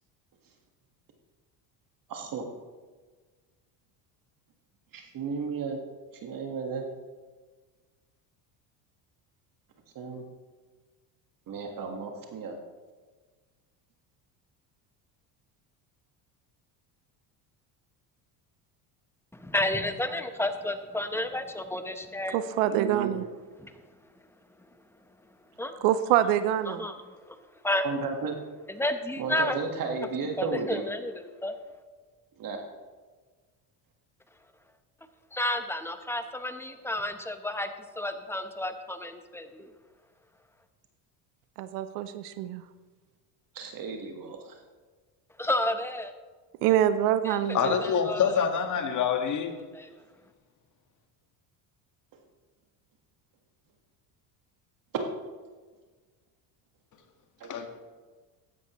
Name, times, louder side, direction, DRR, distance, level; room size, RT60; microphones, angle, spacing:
voice 1, 2.1-2.4 4.9-5.8 6.2-6.8 9.9-10.2 11.5-12.6 22.7-23.1 27.8-28.4 29.2-30.8 32.4-32.6 43.5-44.6 57.4-57.7, right 5 dB, 45° right, 3 dB, 1.7 m, -34 dB
voice 2, 19.3-22.6 23.6-23.7 25.6-25.7 26.7-27.4 27.6-27.9 28.7-29.6 30.4-31.6 35.3-39.7 45.4-46.1 47.2-47.4 47.8-48.2 49.7-49.9, left 1 dB, 5° left, 8 dB, 0.9 m, -31 dB
voice 3, 22.3-23.2 25.8-26.9 41.6-42.6 46.6-47.7, right 11 dB, 90° right, 12 dB, 0.7 m, -25 dB
voice 4, 47.5-49.6 57.4-57.7, left 7 dB, 40° left, 5 dB, 1.7 m, -26 dB
15.0 x 10.5 x 3.1 m, 1.4 s
supercardioid pair, 110°, 45 cm